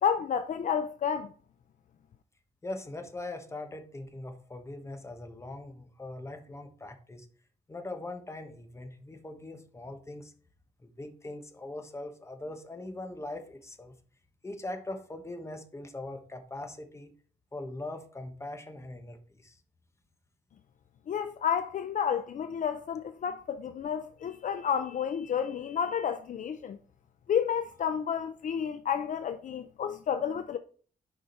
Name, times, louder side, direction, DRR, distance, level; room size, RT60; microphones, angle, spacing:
voice 1, 0.0-1.3 21.1-26.8 27.3-30.6, left 8 dB, 55° left, 0.5 m, -31 dB
voice 2, 2.6-7.3 7.7-10.3 10.8-13.9 14.4-17.1 17.5-19.6, left 2 dB, 15° left, 1.2 m, -41 dB
6.6 x 5.0 x 4.4 m
wide cardioid pair, 125°, 16 cm